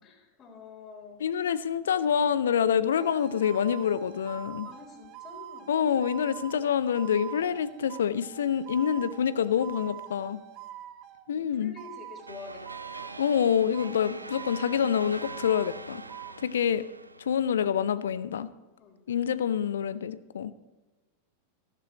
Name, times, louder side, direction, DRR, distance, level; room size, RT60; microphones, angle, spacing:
voice 1, 0.0-1.2 4.6-5.7 11.3-13.3 16.2-16.4 18.7-19.0, left 5 dB, 30° left, 1 dB, 3.6 m, -48 dB
voice 2, 1.2-4.7 5.7-10.4 11.3-11.7 13.2-16.0 16.4-16.8 17.3-18.5 19.1-20.5, left 8 dB, 65° left, 16 dB, 0.6 m, -26 dB
sound 1, 3.0-11.3 11.8-13.5 13.7-16.4, right 12 dB, 40° right, 1.0 m, -45 dB
sound 2, 12.3-17.7, right 2 dB, 80° right, 0.5 m, -43 dB
14.5 x 14.5 x 3.1 m, 1.2 s
figure-of-eight pair, 90°, 0 cm